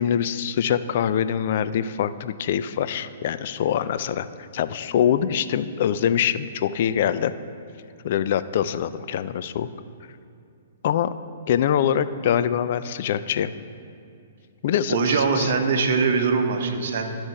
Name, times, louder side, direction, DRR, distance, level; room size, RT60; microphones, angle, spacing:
voice 1, 0.0-4.3 4.5-7.3 8.0-9.7 10.8-11.1 11.5-13.5 14.6-15.5, left 9 dB, 55° left, 13 dB, 0.4 m, -24 dB
voice 2, 14.9-17.2, right 5 dB, 60° right, 5 dB, 1.0 m, -22 dB
12.5 x 4.4 x 4.8 m, 2.6 s
figure-of-eight pair, 120°, 0 cm